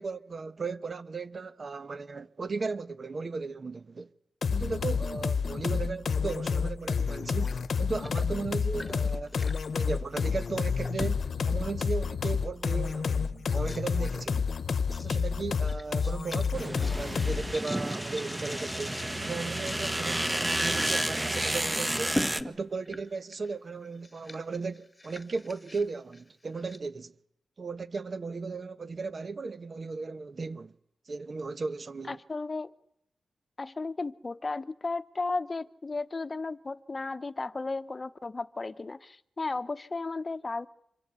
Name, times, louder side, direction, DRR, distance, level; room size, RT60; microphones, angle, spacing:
voice 1, 0.0-4.1 4.5-9.4 9.7-14.5 15.0-27.1 27.6-30.7 31.1-32.2, right 4 dB, 50° right, 1.1 m, -36 dB
sound 1, 4.4-17.5, left 5 dB, 65° left, 1.0 m, -29 dB
sound 2, 7.2-7.5 7.8-9.7 10.8-11.4 12.0-12.1 12.9-13.0 13.6-14.1 14.9-15.2 15.7-21.0 21.3-21.4 22.1-23.5 23.9-26.8, left 1 dB, 15° left, 1.6 m, -41 dB
sound 3, 16.5-22.4, right 1 dB, 15° right, 1.2 m, -31 dB
voice 2, 32.1-32.7 33.6-40.7, left 3 dB, 35° left, 0.9 m, -34 dB
26.0 x 22.5 x 8.3 m
cardioid pair, 75°, 0 cm